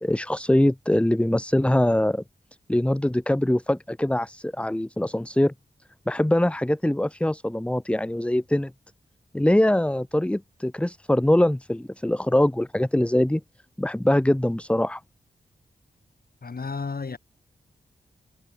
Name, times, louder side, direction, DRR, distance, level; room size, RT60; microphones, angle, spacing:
voice 1, 0.0-2.2 2.7-5.5 6.1-8.7 9.3-13.4 13.8-15.0, left 1 dB, 5° left, 0.7 m, -23 dB
voice 2, 16.4-17.2, left 4 dB, 55° left, 3.9 m, -32 dB
cardioid pair, 40°, 18 cm